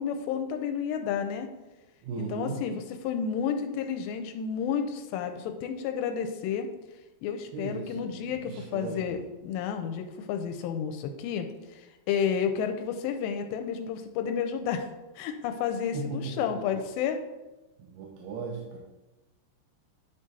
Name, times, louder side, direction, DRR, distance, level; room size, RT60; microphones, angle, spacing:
voice 1, 0.0-1.5 2.2-6.7 7.2-9.2 9.4-14.9 15.2-17.2, left 7 dB, 90° left, 6 dB, 2.7 m, -31 dB
voice 2, 2.0-2.6 7.5-9.1 15.9-16.8 17.8-18.8, right 4 dB, 75° right, -1 dB, 2.7 m, -37 dB
10.5 x 3.8 x 4.0 m, 1.1 s
omnidirectional pair, 4.9 m